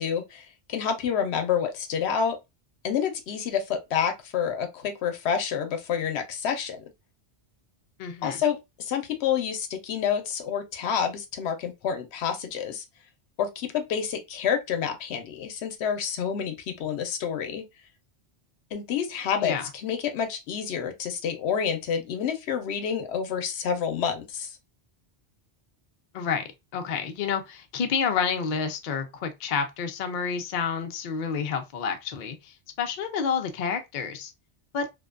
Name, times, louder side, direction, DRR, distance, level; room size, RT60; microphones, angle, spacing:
voice 1, 0.0-2.4 2.8-6.8 8.2-12.8 13.4-17.6 18.7-24.6, left 7 dB, 85° left, 0.9 m, -28 dB
voice 2, 8.0-8.4 19.4-19.7 26.1-26.4 26.7-34.3 34.7-34.9, left 6 dB, 60° left, 0.6 m, -29 dB
2.5 x 2.1 x 2.3 m
omnidirectional pair, 1.1 m